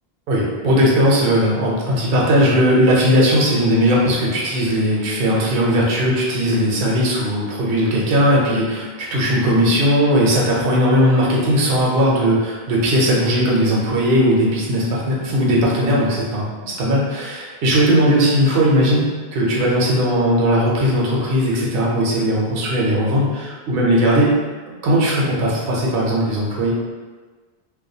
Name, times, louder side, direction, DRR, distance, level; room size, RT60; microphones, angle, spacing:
voice 1, 0.3-19.0 19.3-24.3 24.8-26.7, equal, 65° right, -4 dB, 0.8 m, -18 dB
2.3 x 2.2 x 2.7 m, 1.4 s
omnidirectional pair, 1.1 m